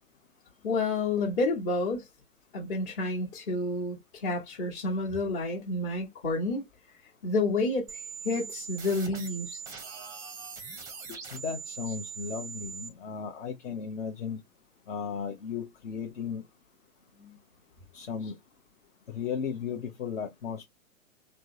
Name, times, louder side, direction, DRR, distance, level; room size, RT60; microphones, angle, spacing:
voice 1, 0.6-2.1 2.5-6.6 7.2-9.6 17.2-17.4, left 2 dB, 40° left, 1.2 m, -30 dB
sound 1, 7.9-12.9, right 6 dB, 10° right, 0.5 m, -41 dB
voice 2, 11.1-14.4 14.9-16.4 17.9-18.4 19.1-20.6, left 6 dB, 60° left, 0.8 m, -35 dB
3.4 x 2.0 x 2.7 m
hypercardioid pair, 120°, 41 cm